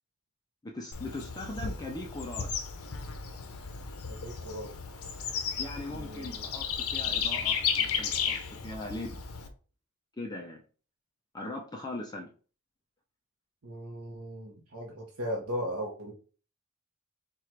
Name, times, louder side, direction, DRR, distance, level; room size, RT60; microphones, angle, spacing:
voice 1, 0.6-2.5 5.6-8.4 8.6-9.2 10.1-10.6 11.3-12.3, left 2 dB, 15° left, 0 dB, 0.5 m, -39 dB
Bird / Insect, 0.9-9.5, left 7 dB, 70° left, 0.7 m, -34 dB
voice 2, 4.1-4.7 5.9-6.5 13.6-16.1, equal, 70° right, -1 dB, 1.0 m, -37 dB
4.6 x 2.4 x 4.5 m, 0.38 s
head